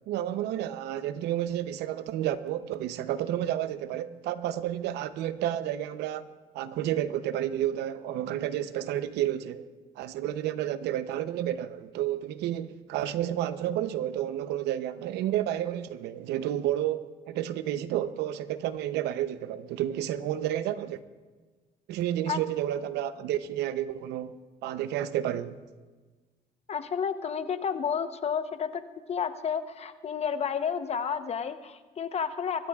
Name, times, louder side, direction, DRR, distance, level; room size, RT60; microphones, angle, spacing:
voice 1, 0.1-6.2 6.5-9.7 10.0-17.0 17.3-21.0 21.9-25.6, right 12 dB, 85° right, 0.7 m, -31 dB
voice 2, 26.7-28.8 29.1-32.7, left 7 dB, 40° left, 0.8 m, -31 dB
24.0 x 14.5 x 2.4 m
cardioid pair, 110°, 17 cm